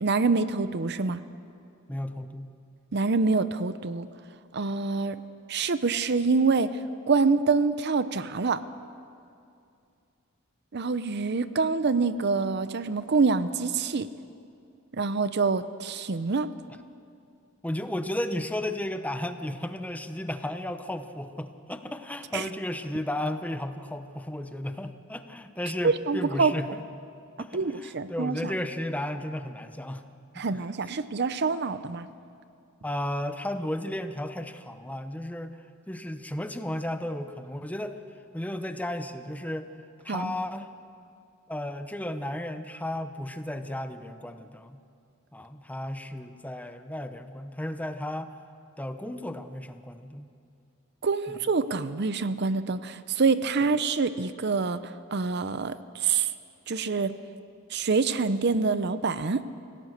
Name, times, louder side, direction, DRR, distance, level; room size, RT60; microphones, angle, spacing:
voice 1, 0.0-1.2 2.9-4.1 4.5-5.2 5.5-6.8 7.1-8.6 10.7-14.1 14.9-16.5 22.3-22.4 25.8-26.5 27.5-28.5 30.4-32.1 40.1-40.4 51.0-54.8 55.1-56.3 56.7-57.2 57.7-59.4, right 4 dB, 55° right, 13 dB, 0.7 m, -26 dB
voice 2, 1.9-2.5 17.6-26.8 27.4-30.0 30.3-30.4 32.8-35.6 35.9-38.0 38.3-39.7 40.0-40.7 41.5-44.8 45.3-48.3 48.8-50.3 51.3-51.4, left 1 dB, 5° left, 8 dB, 0.8 m, -34 dB
26.0 x 17.0 x 6.7 m, 2.5 s
head